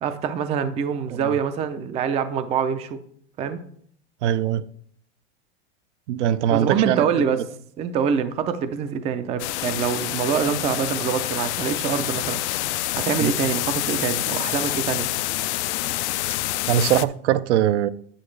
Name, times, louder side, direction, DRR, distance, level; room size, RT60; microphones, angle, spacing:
voice 1, 0.0-3.0 3.4-3.6 6.5-7.4 7.8-12.4 13.0-15.1, right 7 dB, 20° right, 0.4 m, -25 dB
voice 2, 4.2-4.6 6.1-7.0 13.2-13.3 16.7-17.9, right 11 dB, 75° right, 0.6 m, -21 dB
sound 1, 9.4-17.0, left 16 dB, 70° left, 0.5 m, -27 dB
8.7 x 8.7 x 3.2 m
supercardioid pair, 140°, 35 cm